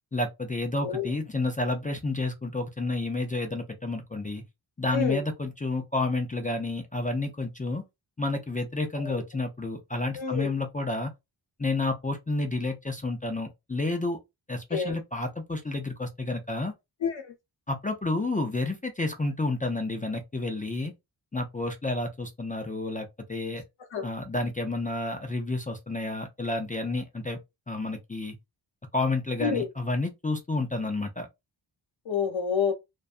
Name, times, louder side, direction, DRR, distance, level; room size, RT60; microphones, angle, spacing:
voice 1, 0.1-4.4 4.8-7.8 8.2-11.1 11.6-14.2 14.5-16.7 17.7-20.9 21.3-23.6 24.0-27.4 27.7-28.4 28.9-31.3, left 2 dB, 20° left, 0.3 m, -30 dB
voice 2, 10.2-10.5 14.7-15.0 17.0-17.3 23.9-24.0 29.4-29.7 32.1-32.7, left 6 dB, 80° left, 0.8 m, -28 dB
2.6 x 2.2 x 2.4 m
wide cardioid pair, 115°, 46 cm